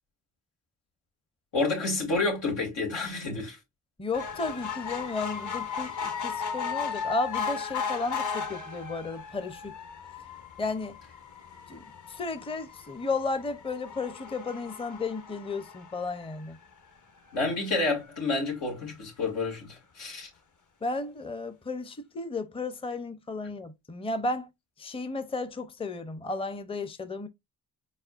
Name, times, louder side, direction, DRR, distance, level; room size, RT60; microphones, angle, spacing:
voice 1, 1.5-3.6 17.3-20.3, left 3 dB, 90° left, 2.3 m, -29 dB
voice 2, 4.0-9.7 10.6-10.9 11.7-16.6 20.8-24.5 24.8-27.3, left 3 dB, 15° left, 0.6 m, -33 dB
sound 1, 4.1-16.7 17.3-17.4 17.7-17.8 18.0-18.1, left 6 dB, 45° left, 1.0 m, -36 dB
4.2 x 4.2 x 2.4 m
cardioid pair, 60°, 42 cm